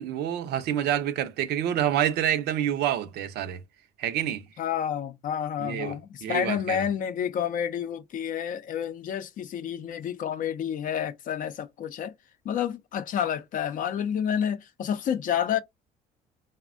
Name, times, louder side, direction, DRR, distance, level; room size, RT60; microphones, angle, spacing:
voice 1, 0.0-3.6 4.0-4.4 5.6-6.8, right 10 dB, 75° right, 0.5 m, -28 dB
voice 2, 4.6-12.1 12.4-15.6, left 9 dB, 55° left, 0.5 m, -29 dB
3.3 x 2.1 x 2.4 m
cardioid pair, 110°, 17 cm